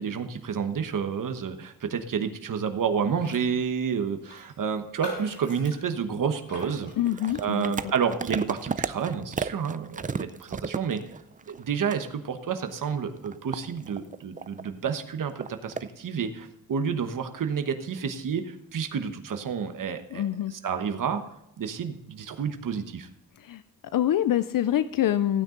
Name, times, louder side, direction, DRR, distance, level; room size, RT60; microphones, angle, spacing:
voice 1, 0.0-6.9 7.4-11.0 11.5-20.2 20.6-21.2 21.6-23.1, right 6 dB, 70° right, 7 dB, 1.2 m, -30 dB
Raindrop, 3.1-3.5 3.8-3.9 4.2-7.8 8.3-8.5, left 1 dB, 35° left, 3.6 m, -42 dB
sound 1, 6.5-11.6 11.9-12.1 12.6-14.7 15.2-15.9, right 5 dB, 25° right, 0.4 m, -34 dB
voice 2, 7.0-7.7 20.1-20.5 23.4-23.6 23.9-25.4, left 11 dB, 75° left, 13 dB, 0.5 m, -25 dB
15.5 x 9.3 x 3.9 m, 0.85 s
wide cardioid pair, 115°, 34 cm